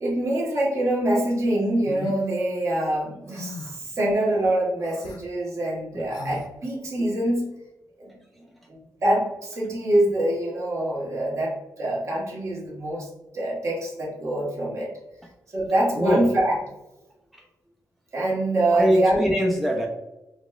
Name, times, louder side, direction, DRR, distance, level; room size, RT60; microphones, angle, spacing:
voice 1, 0.0-7.4 8.0-8.1 8.7-13.1 13.3-14.9 15.5-16.6 18.1-19.3, right 1 dB, 50° right, -3 dB, 1.0 m, -25 dB
sound 1, 1.8-2.2 3.3-3.8 4.8-5.2 6.1-6.5, left 3 dB, 85° left, 0.4 m, -37 dB
voice 2, 16.0-16.4 17.3-17.4 18.7-19.9, equal, ahead, 0 dB, 0.3 m, -22 dB
4.0 x 2.1 x 2.2 m, 0.97 s
wide cardioid pair, 140°, 7 cm